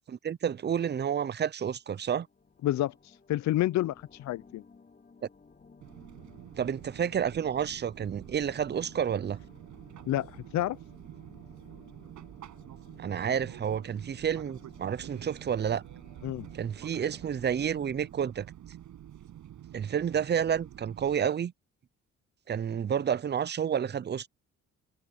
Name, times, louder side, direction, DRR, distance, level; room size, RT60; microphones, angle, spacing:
voice 1, 0.1-2.3 6.6-9.4 13.0-15.8 16.5-18.5 19.7-21.5 22.5-24.3, right 8 dB, 35° right, 0.6 m, -30 dB
sound 1, 1.8-18.1, left 4 dB, 30° left, 4.0 m, -58 dB
voice 2, 2.6-4.6 10.1-10.8 16.2-16.5, left 14 dB, 65° left, 0.6 m, -29 dB
Fixed-wing aircraft airplane, 5.8-21.2, right 11 dB, 75° right, 7.8 m, -48 dB
cardioid pair, 90°, 30 cm